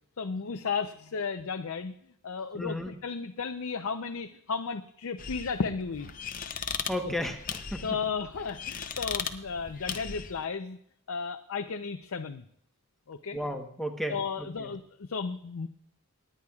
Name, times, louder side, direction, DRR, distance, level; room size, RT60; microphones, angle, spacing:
voice 1, 0.2-1.9 2.2-6.1 7.0-7.1 7.8-10.8 11.1-12.4 13.1-13.4 14.1-15.7, left 5 dB, 75° left, 7 dB, 0.6 m, -34 dB
voice 2, 2.5-2.9 6.9-7.8 13.3-14.7, equal, ahead, 4 dB, 1.0 m, -34 dB
sound 1, 5.2-10.4, left 7 dB, 40° left, 0.7 m, -38 dB
27.5 x 10.0 x 2.4 m, 0.71 s
head